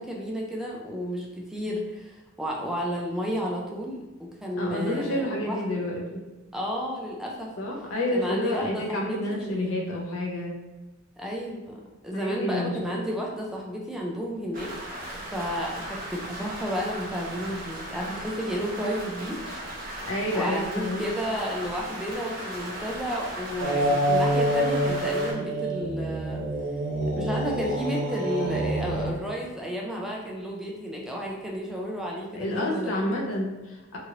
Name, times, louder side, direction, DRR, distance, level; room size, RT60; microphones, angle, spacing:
voice 1, 0.0-5.6 6.5-7.5 8.1-9.8 11.2-14.7 15.1-20.0 20.3-26.4 27.1-33.1, equal, ahead, -2 dB, 0.3 m, -32 dB
voice 2, 4.6-6.2 7.6-10.6 12.1-12.8 20.0-21.1 32.3-34.0, left 1 dB, 75° left, -1 dB, 0.7 m, -29 dB
Rain, 14.5-25.3, right 1 dB, 45° right, 0.7 m, -37 dB
sound 1, 23.6-29.1, right 1 dB, 80° right, 0.7 m, -26 dB
2.9 x 2.5 x 2.8 m, 1.1 s
head